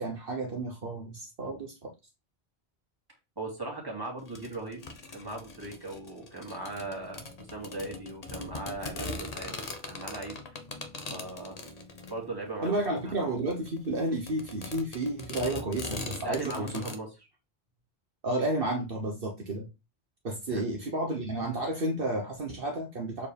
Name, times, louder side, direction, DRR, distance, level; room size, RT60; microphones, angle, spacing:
voice 1, 0.0-1.9 12.6-16.8 18.2-19.7 20.2-23.3, right 1 dB, 60° right, 2 dB, 1.3 m, -31 dB
voice 2, 3.4-4.8 5.1-7.2 7.5-9.5 9.9-10.3 11.1-11.6 12.1-12.7 13.0-13.1 16.2-17.1 20.5-20.6, right 2 dB, 20° right, 0 dB, 2.4 m, -38 dB
sound 1, 4.2-16.9, left 3 dB, 40° left, 1.0 m, -41 dB
7.1 x 4.6 x 3.4 m, 0.26 s
omnidirectional pair, 1.1 m